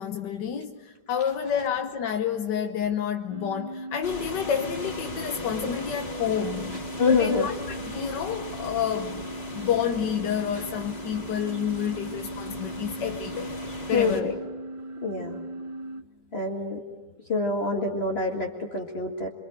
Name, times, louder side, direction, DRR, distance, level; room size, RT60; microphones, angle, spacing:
voice 1, 0.0-6.8 7.1-7.5 7.9-9.3 9.5-13.6 13.9-14.3, left 8 dB, 85° left, 1.8 m, -29 dB
sound 1, 3.3-16.0, right 1 dB, 30° right, 0.6 m, -38 dB
sound 2, 4.0-14.2, left 2 dB, 70° left, 5.4 m, -39 dB
voice 2, 7.0-7.5 13.9-14.3 15.0-15.4 16.3-16.8 17.3-19.3, left 3 dB, 35° left, 2.4 m, -26 dB
27.5 x 25.5 x 8.2 m
omnidirectional pair, 1.8 m